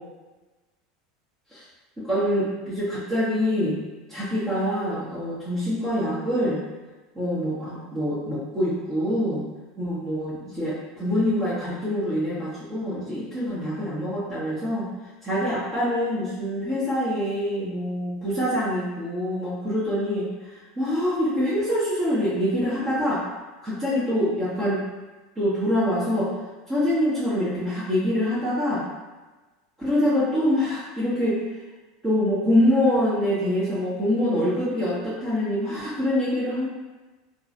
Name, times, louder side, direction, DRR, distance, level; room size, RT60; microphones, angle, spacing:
voice 1, 2.0-3.8 4.1-6.6 7.1-9.5 9.8-14.9 15.2-23.2 23.6-24.8 25.3-26.3 26.7-28.8 29.8-31.4 32.0-36.7, equal, 20° right, -12 dB, 1.0 m, -25 dB
3.0 x 2.6 x 2.6 m, 1.2 s
figure-of-eight pair, 75°, 0 cm